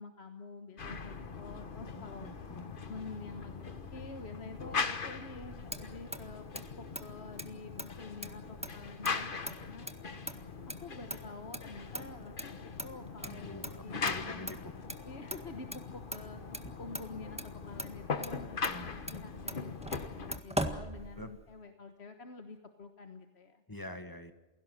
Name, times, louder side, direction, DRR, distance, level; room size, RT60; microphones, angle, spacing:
voice 1, 0.0-2.3 2.8-6.5 6.8-9.9 10.8-14.5 15.0-17.4 17.7-23.6, left 3 dB, 65° left, 6 dB, 1.6 m, -48 dB
sound 1, 0.8-20.4, left 5 dB, 50° left, 1.4 m, -41 dB
voice 2, 1.9-2.6 13.2-14.6 18.7-18.9 21.2-21.3 23.7-24.3, left 1 dB, 20° left, 8 dB, 1.8 m, -45 dB
Motor vehicle (road), 5.3-21.6, right 1 dB, 5° right, 1.6 m, -43 dB
28.5 x 17.5 x 6.5 m, 1.2 s
omnidirectional pair, 1.2 m